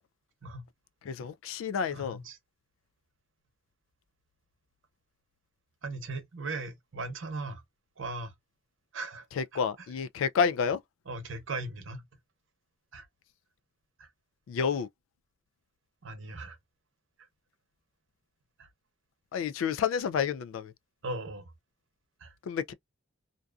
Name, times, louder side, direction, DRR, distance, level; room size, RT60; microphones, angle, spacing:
voice 1, 1.1-2.2 9.4-10.8 14.5-14.9 19.3-20.7 22.5-22.7, left 6 dB, 85° left, 0.3 m, -29 dB
voice 2, 1.9-2.4 5.8-7.6 8.0-8.3 8.9-9.3 9.5-9.6 11.1-12.1 12.9-13.1 14.0-14.1 16.0-16.6 17.2-17.3 18.6-18.7 21.0-21.5 22.2-22.3, right 2 dB, 75° right, 0.8 m, -38 dB
2.6 x 2.3 x 2.3 m
head